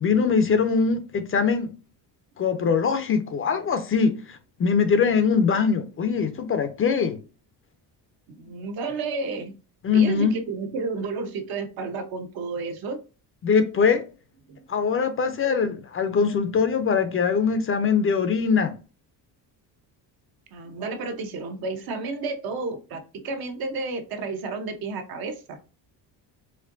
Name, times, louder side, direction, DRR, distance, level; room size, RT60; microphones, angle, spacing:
voice 1, 0.0-1.7 2.4-7.2 9.8-10.3 13.4-14.0 14.7-18.7, left 5 dB, 35° left, 0.4 m, -22 dB
voice 2, 8.3-9.5 9.9-13.0 14.5-14.6 20.5-25.6, right 4 dB, 60° right, 0.9 m, -31 dB
4.3 x 2.6 x 2.5 m
cardioid pair, 155°, 41 cm